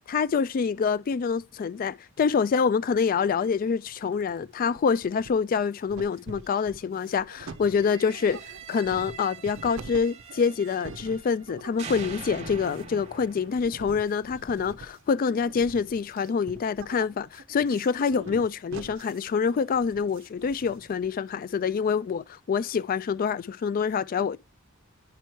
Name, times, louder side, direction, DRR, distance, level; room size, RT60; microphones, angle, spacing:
voice 1, 0.1-8.4 8.7-24.4, left 6 dB, 40° left, 0.3 m, -26 dB
sound 1, 3.9-4.4 4.7-5.6 5.9-21.1, right 4 dB, 60° right, 0.5 m, -45 dB
sound 2, 7.6-11.5 11.8-14.8, right 5 dB, 30° right, 1.1 m, -44 dB
10.0 x 4.5 x 3.0 m
head